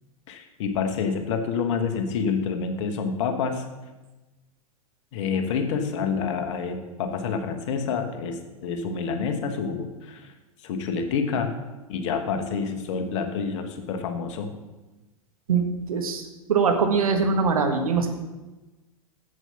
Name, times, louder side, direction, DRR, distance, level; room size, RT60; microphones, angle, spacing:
voice 1, 0.3-3.6 5.1-10.3 10.6-11.5 11.9-14.5, left 5 dB, 55° left, 6 dB, 1.4 m, -28 dB
voice 2, 15.5-16.2 16.5-18.1, right 5 dB, 70° right, 5 dB, 1.5 m, -22 dB
7.9 x 7.8 x 5.8 m, 1.1 s
figure-of-eight pair, 95°, 19 cm